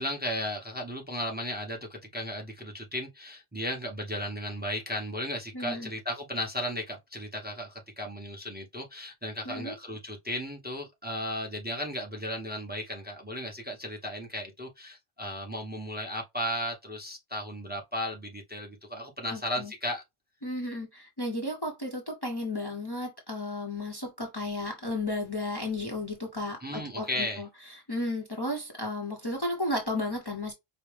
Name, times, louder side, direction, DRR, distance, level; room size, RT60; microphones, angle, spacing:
voice 1, 0.0-20.0 26.6-27.4, left 1 dB, 10° right, 0.9 m, -35 dB
voice 2, 5.5-5.9 9.4-9.7 19.3-19.7 20.4-30.5, left 2 dB, 25° left, 0.8 m, -34 dB
5.0 x 2.1 x 3.2 m
omnidirectional pair, 1.0 m